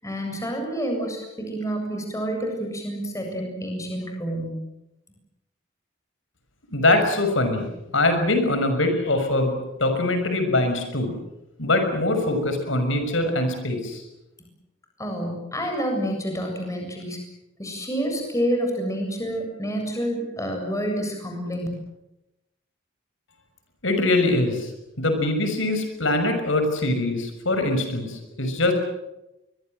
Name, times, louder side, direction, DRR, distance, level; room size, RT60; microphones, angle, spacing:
voice 1, 0.0-4.6 14.4-14.5 15.0-17.2 17.6-21.7, equal, 15° left, 3 dB, 7.6 m, -28 dB
voice 2, 6.7-7.7 7.9-9.5 9.8-11.1 11.6-14.0 23.8-24.7 25.0-28.7, left 2 dB, 90° left, 6 dB, 6.1 m, -23 dB
26.0 x 22.0 x 7.8 m, 0.91 s
head